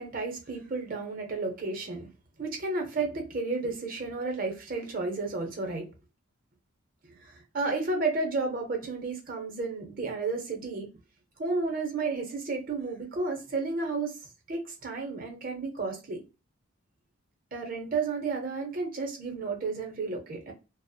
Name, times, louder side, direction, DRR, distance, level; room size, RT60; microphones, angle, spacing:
voice 1, 0.0-2.1 2.4-5.9 7.2-10.9 11.4-14.2 14.5-16.2 17.5-20.5, right 3 dB, 40° right, 0.7 m, -32 dB
2.4 x 2.0 x 2.6 m
head